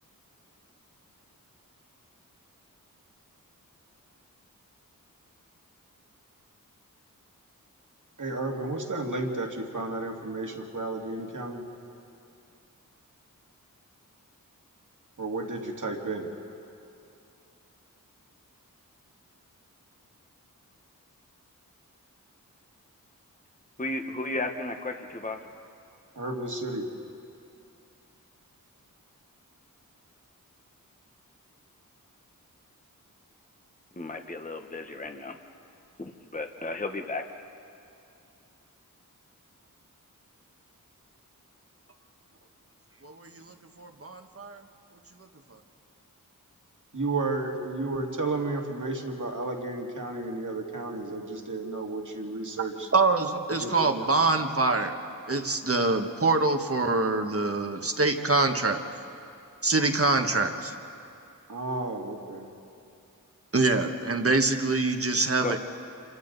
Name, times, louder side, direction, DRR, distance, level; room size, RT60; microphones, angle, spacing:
voice 1, 8.2-11.6 15.2-16.3 26.2-26.9 46.9-52.9 53.6-54.1 61.5-62.5, right 2 dB, 60° right, 1 dB, 2.3 m, -32 dB
voice 2, 23.8-25.4 34.0-35.4 36.0-37.2 65.4-65.5, left 2 dB, 25° left, 5 dB, 1.1 m, -34 dB
voice 3, 43.0-44.6 52.9-55.0 55.3-58.8 59.6-60.7 63.5-65.6, right 3 dB, 40° right, 5 dB, 1.4 m, -25 dB
27.5 x 25.5 x 4.0 m, 2.6 s
wide cardioid pair, 60°, 34 cm